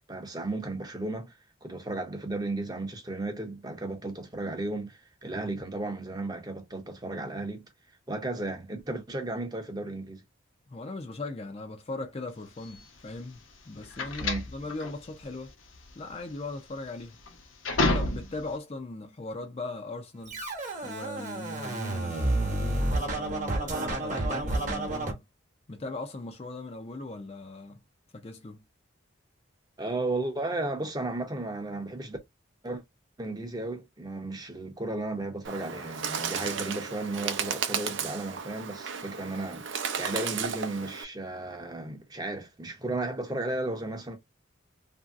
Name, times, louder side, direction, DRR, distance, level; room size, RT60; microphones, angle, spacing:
voice 1, 0.1-1.3 1.6-7.6 8.1-10.2 14.2-14.5 29.8-32.2 32.6-32.8 33.2-44.2, right 2 dB, 20° right, 0.6 m, -34 dB
voice 2, 10.7-13.4 13.7-15.5 16.0-17.2 17.8-20.4 20.8-25.3 25.7-27.8 28.1-28.7, left 2 dB, 30° left, 0.4 m, -39 dB
sound 1, 12.6-18.6, left 2 dB, 80° left, 0.9 m, -31 dB
Scratching (performance technique), 20.3-25.1, right 2 dB, 40° right, 1.0 m, -30 dB
Bird, 35.4-41.0, right 7 dB, 70° right, 0.5 m, -34 dB
3.0 x 2.6 x 2.4 m
head